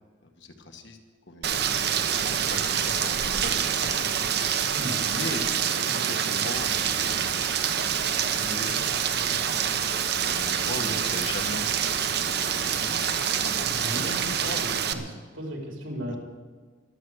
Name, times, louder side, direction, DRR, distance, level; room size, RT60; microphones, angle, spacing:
voice 1, 0.2-1.0 1.3-1.6 2.2-4.1 5.0-5.4 5.7-7.3 8.0-8.9 10.1-14.6 16.1-16.2, left 2 dB, 65° left, 4 dB, 1.6 m, -39 dB
Rain, 1.4-14.9, right 8 dB, 55° right, 0.9 m, -26 dB
voice 2, 4.7-5.1 10.8-11.0 13.7-16.2, equal, 85° right, 0 dB, 3.6 m, -36 dB
23.0 x 7.7 x 6.4 m, 1.5 s
head